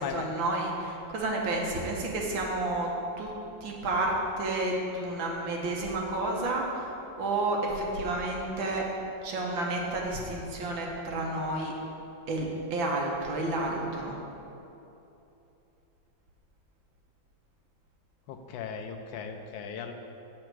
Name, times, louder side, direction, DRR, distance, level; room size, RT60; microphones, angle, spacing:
voice 1, 0.0-2.9 3.2-3.3 3.6-6.9 7.2-8.9 9.2-11.7 12.3-14.2, right 2 dB, 90° right, -1 dB, 1.8 m, -30 dB
voice 2, 18.3-19.9, left 7 dB, 80° left, 5 dB, 1.3 m, -37 dB
8.0 x 4.6 x 6.1 m, 2.9 s
omnidirectional pair, 2.0 m